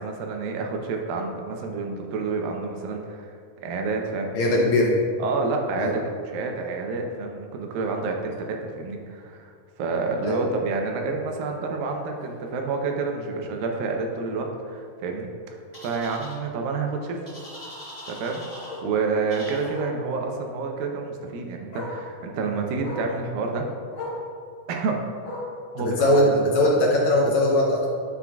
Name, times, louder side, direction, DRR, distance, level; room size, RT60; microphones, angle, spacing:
voice 1, 0.0-4.3 5.2-9.5 9.8-17.2 18.1-23.7 24.7-25.0 25.7-26.1, right 4 dB, 90° right, 2 dB, 2.6 m, -29 dB
voice 2, 4.3-4.9 5.8-5.9 10.2-10.4 26.0-27.9, left 1 dB, 70° left, -3 dB, 1.9 m, -20 dB
Bark, 12.2-12.4 12.8-12.9 13.3-13.4 13.6-13.7 15.1-15.2 17.7-17.8 18.6-18.9 19.7-20.0 21.2-21.3 21.7-22.0 22.8-23.1 23.9-24.3 25.2-25.6 26.6-26.7, left 2 dB, 45° left, 1.9 m, -36 dB
sound 1, 15.7-16.3 17.3-18.8 19.3-19.7, left 1 dB, 25° left, 1.2 m, -41 dB
10.0 x 7.3 x 2.3 m, 2.2 s
omnidirectional pair, 3.9 m